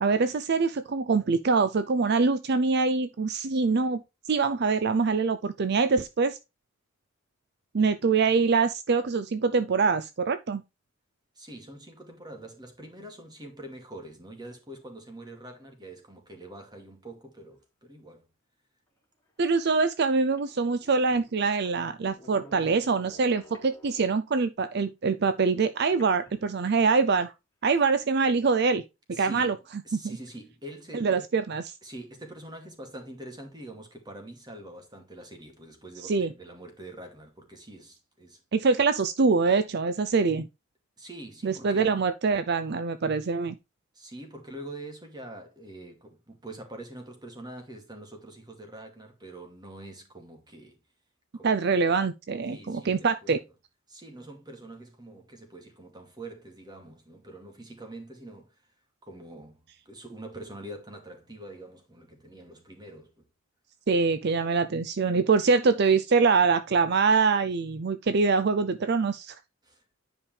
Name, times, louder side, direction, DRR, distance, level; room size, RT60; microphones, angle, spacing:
voice 1, 0.0-4.0 4.3-6.4 7.7-10.6 19.4-27.3 27.6-28.8 29.2-29.5 29.9-30.2 30.9-31.7 36.0-36.3 38.5-40.5 41.4-43.6 51.4-53.4 63.9-69.4, right 4 dB, 55° right, 0.5 m, -24 dB
voice 2, 11.4-18.3 29.1-29.5 29.8-31.2 31.8-38.4 41.0-42.0 43.9-50.8 51.3-51.9 52.5-53.3 53.9-58.5 59.0-63.3 69.6-69.8, right 1 dB, 20° right, 2.4 m, -45 dB
sound 1, 19.3-19.4 20.0-20.1 20.2-24.3 26.0-27.1, left 1 dB, 10° left, 2.6 m, -53 dB
9.9 x 5.2 x 3.3 m
head